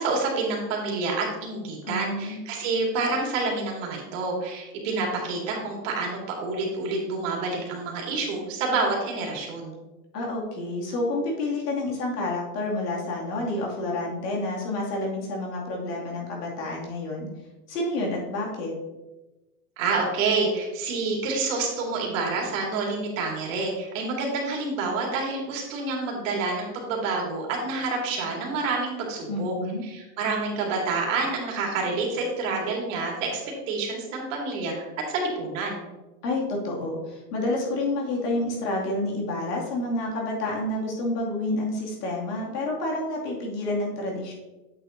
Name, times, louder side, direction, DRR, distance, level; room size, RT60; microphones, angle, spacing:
voice 1, 0.0-9.8 19.8-29.5 29.8-33.4 33.7-35.9, right 3 dB, 55° right, -1 dB, 2.4 m, -28 dB
voice 2, 1.8-2.4 10.1-17.3 17.7-18.7 29.3-29.8 36.2-44.3, left 2 dB, 80° left, -2 dB, 2.6 m, -29 dB
8.2 x 6.7 x 2.7 m, 1.1 s
supercardioid pair, 165°, 46 cm